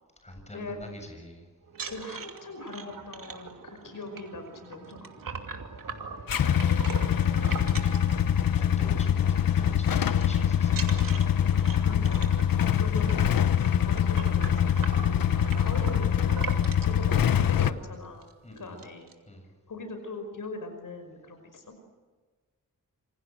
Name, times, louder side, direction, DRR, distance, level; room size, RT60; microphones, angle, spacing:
voice 1, 0.2-1.5 5.9-6.3 7.5-8.2 8.6-11.2 18.4-18.8 19.3-19.5, left 1 dB, 20° left, 4 dB, 7.6 m, -45 dB
sound 1, 1.7-8.8 9.1-9.4 9.6-10.2 10.7-17.0 17.7-17.8 18.1-18.3 18.6-19.1, right 5 dB, 80° right, 2.7 m, -41 dB
voice 2, 1.9-5.5 11.8-15.0 15.6-16.3 16.8-18.3 18.6-19.1 19.7-21.7, left 2 dB, 70° left, 7 dB, 5.5 m, -41 dB
Motorcycle / Engine starting / Idling, 6.3-17.7, left 9 dB, 90° left, 1.1 m, -24 dB
27.5 x 26.5 x 7.7 m, 1.4 s
wide cardioid pair, 115°, 33 cm